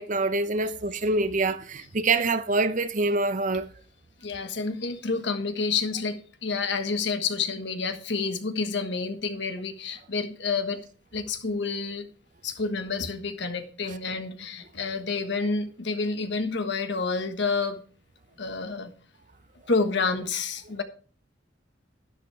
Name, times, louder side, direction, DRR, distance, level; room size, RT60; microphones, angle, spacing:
voice 1, 0.0-3.7, right 3 dB, 45° right, 0.8 m, -25 dB
voice 2, 4.2-10.8 11.1-12.1 12.4-17.8 18.4-18.9 19.7-20.8, left 4 dB, 65° left, 1.4 m, -29 dB
11.5 x 11.0 x 3.4 m
head